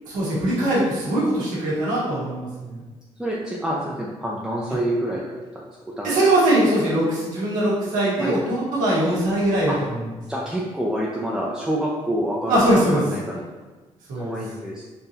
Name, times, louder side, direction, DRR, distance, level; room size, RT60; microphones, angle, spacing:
voice 1, 0.0-2.8 6.0-10.0 12.5-13.0 14.1-14.3, right 1 dB, 85° right, -7 dB, 1.2 m, -21 dB
voice 2, 3.2-5.2 6.0-6.2 8.2-8.4 9.7-9.8 10.3-13.4 14.2-14.8, equal, 5° right, -5 dB, 0.6 m, -27 dB
3.8 x 2.6 x 2.8 m, 1.2 s
supercardioid pair, 70°, 13 cm